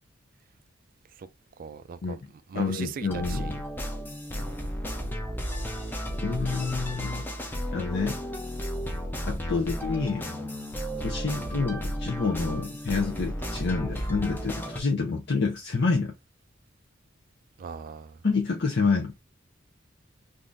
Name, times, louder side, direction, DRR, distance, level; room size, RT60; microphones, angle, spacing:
voice 1, 1.6-2.2 2.5-3.6 9.5-9.7 11.3-11.5 17.6-18.2, right 6 dB, 45° right, 0.3 m, -39 dB
voice 2, 2.5-3.5 6.2-8.2 9.2-10.3 11.0-16.1 18.2-19.1, left 4 dB, 60° left, 0.6 m, -28 dB
sound 1, 3.1-14.8, equal, 10° left, 0.6 m, -33 dB
3.5 x 2.6 x 2.5 m
head